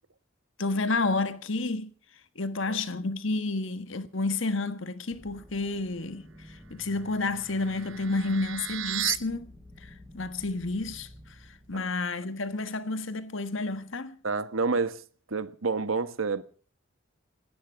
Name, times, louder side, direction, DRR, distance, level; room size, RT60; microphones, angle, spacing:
voice 1, 0.6-1.9 2.4-6.3 6.7-9.5 10.1-11.1 11.7-14.2, left 3 dB, 70° left, 1.5 m, -30 dB
sound 1, 5.1-11.7, equal, ahead, 4.4 m, -50 dB
sound 2, 6.9-9.2, right 13 dB, 70° right, 0.9 m, -35 dB
voice 2, 14.2-16.4, right 4 dB, 85° right, 1.4 m, -29 dB
23.0 x 17.5 x 3.6 m
head